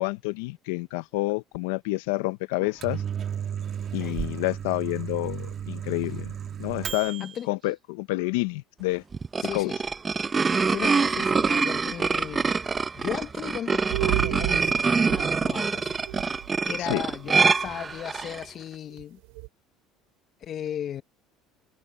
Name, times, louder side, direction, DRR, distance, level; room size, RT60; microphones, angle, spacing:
voice 1, 0.0-3.0 3.9-6.3 6.6-9.0 9.5-9.7 16.8-17.0, left 21 dB, 85° left, 0.8 m, -29 dB
Microwave oven, 2.6-7.4, right 8 dB, 45° right, 1.7 m, -34 dB
sound 1, 9.1-18.4, right 5 dB, 25° right, 0.9 m, -25 dB
voice 2, 9.4-9.8 10.7-12.5 12.9-15.9 16.6-19.2 20.4-21.0, left 10 dB, 50° left, 1.1 m, -36 dB
sound 2, 13.9-16.5 17.0-17.2 18.2-18.3 19.0-19.1 19.3-19.5, right 30 dB, 80° right, 2.7 m, -31 dB
supercardioid pair, 85°, 0 cm